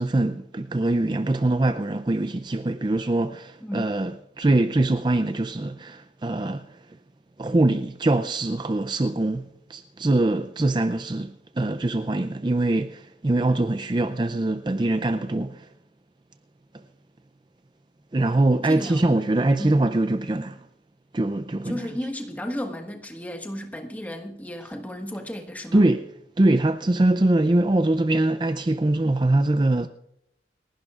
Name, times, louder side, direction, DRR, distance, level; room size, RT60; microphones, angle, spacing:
voice 1, 0.0-6.8 7.4-15.7 18.1-20.6 21.1-21.8 25.7-29.9, right 2 dB, 25° right, 0.4 m, -23 dB
voice 2, 3.6-3.9 18.2-19.1 19.6-19.7 21.6-25.9, equal, 10° left, 1.4 m, -34 dB
29.5 x 11.5 x 2.4 m
head